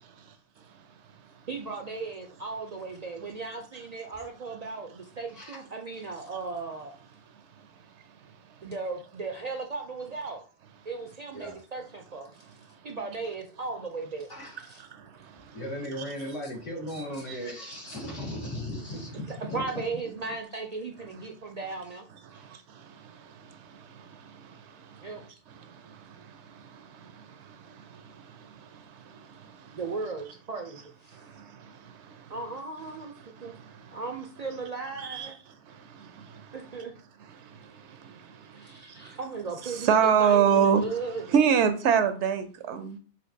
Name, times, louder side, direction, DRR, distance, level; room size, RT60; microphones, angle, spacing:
voice 1, 1.5-7.0 8.6-10.4 10.8-12.3 12.8-14.3 14.6-14.8 16.9-17.2 17.9-18.0 19.1-22.1 25.0-25.2 29.8-31.3 32.3-33.1 33.4-33.5 33.9-35.4 36.5-36.9 38.5-41.2, right 4 dB, 60° right, 0.4 m, -36 dB
voice 2, 5.3-5.6 11.3-11.5 14.3-14.6 15.5-19.6 22.3-22.5, equal, 85° left, 2.1 m, -37 dB
voice 3, 22.3-25.1 25.6-28.8 31.1-32.2 33.4-34.0 35.0-35.3 35.7-36.5 37.3-38.6 39.0-39.1 39.8-40.9 41.3-43.0, right 7 dB, 75° right, 0.9 m, -28 dB
5.8 x 2.7 x 2.7 m
omnidirectional pair, 1.2 m